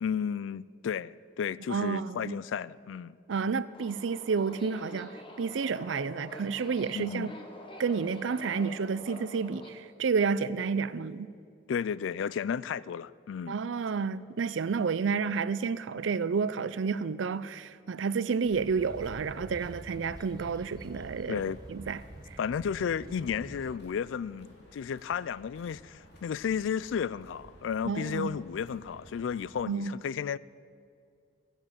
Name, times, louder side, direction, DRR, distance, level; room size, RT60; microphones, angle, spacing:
voice 1, 0.0-3.1 6.9-7.3 11.7-13.6 21.3-21.6 22.4-30.4, left 7 dB, 80° left, 0.3 m, -33 dB
voice 2, 1.7-2.4 3.3-7.3 7.8-11.3 13.5-21.4 21.7-22.0 22.3-22.4 27.9-28.4 29.7-29.9, right 5 dB, 80° right, 0.5 m, -30 dB
Subway metro underground, 3.7-9.7, left 1 dB, 30° left, 1.3 m, -47 dB
sound 1, 18.4-29.6, equal, 60° left, 2.5 m, -55 dB
sound 2, 18.8-23.8, right 1 dB, 20° right, 0.5 m, -48 dB
15.0 x 9.0 x 7.5 m
head